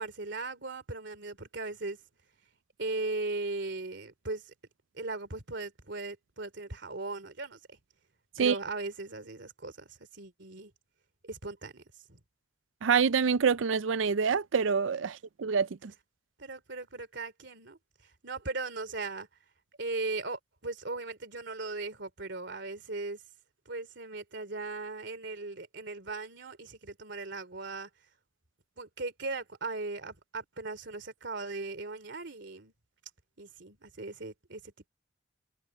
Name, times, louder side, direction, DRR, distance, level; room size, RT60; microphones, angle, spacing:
voice 1, 0.0-2.0 2.8-4.5 4.9-7.8 8.4-10.7 11.2-11.8 12.1-12.2 16.4-17.8 18.2-19.3 19.8-23.2 23.6-27.9 28.8-32.7 33.4-34.9, right 3 dB, 65° right, 3.1 m, -38 dB
voice 2, 12.8-15.9, right 6 dB, 80° right, 0.5 m, -26 dB
head